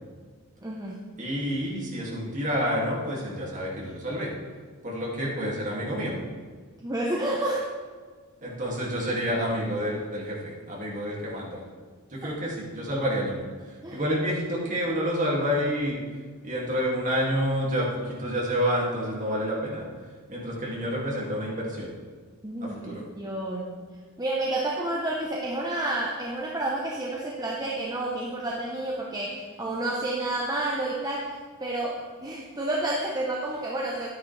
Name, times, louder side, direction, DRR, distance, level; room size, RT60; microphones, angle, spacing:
voice 1, 0.6-1.0 6.8-7.7 12.2-12.3 13.8-14.0 22.4-23.8 24.2-31.3 31.6-34.1, right 1 dB, 15° right, -3 dB, 0.8 m, -30 dB
voice 2, 1.2-4.3 4.8-6.2 8.4-11.6 12.1-16.0 16.4-19.8 20.3-21.9 22.6-23.0, equal, 35° right, -4 dB, 2.3 m, -29 dB
11.0 x 9.5 x 3.3 m, 1.5 s
head